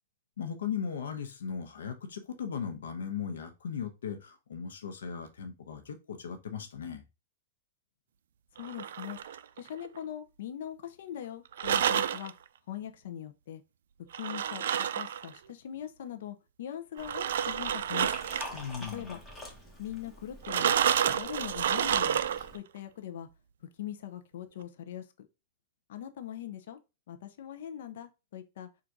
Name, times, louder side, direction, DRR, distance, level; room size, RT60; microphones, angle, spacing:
voice 1, 0.4-7.0 18.5-19.2, left 7 dB, 90° left, 0.9 m, -37 dB
voice 2, 8.6-9.2 9.6-12.3 12.7-13.6 14.2-14.6 14.9-18.1 18.9-19.2 19.8-20.7 21.2-22.3 22.5-23.3 23.8-25.0 25.9-26.8 27.1-28.7, left 10 dB, 70° left, 0.6 m, -41 dB
sound 1, 8.6-10.0 11.5-12.3 14.1-15.4 17.0-18.6 20.4-22.6, right 9 dB, 75° right, 0.3 m, -29 dB
Liquid, 17.0-22.6, left 1 dB, 10° left, 1.3 m, -47 dB
3.8 x 2.5 x 4.5 m
hypercardioid pair, 140°, 0 cm